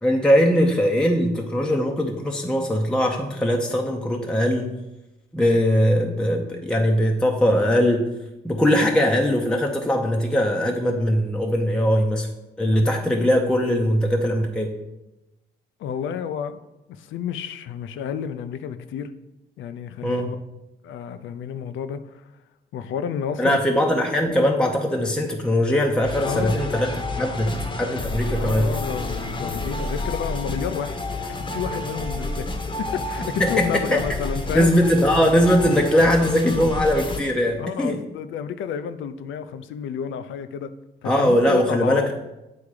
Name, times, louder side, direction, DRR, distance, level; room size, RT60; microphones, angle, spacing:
voice 1, 0.0-4.7 5.3-8.1 8.4-12.3 12.6-14.7 20.0-20.2 23.4-28.7 33.4-34.0 34.5-38.0 41.0-42.1, equal, 5° left, 1 dB, 0.7 m, -20 dB
voice 2, 15.8-16.6 16.9-19.1 19.6-20.4 20.8-22.2 22.7-23.6 26.2-26.6 28.3-31.0 31.3-34.7 37.6-40.7 41.0-42.1, left 8 dB, 75° left, 11 dB, 0.5 m, -30 dB
sound 1, 26.0-37.2, left 2 dB, 25° left, 0.9 m, -30 dB
8.6 x 3.5 x 4.8 m, 0.99 s
cardioid pair, 90°, 20 cm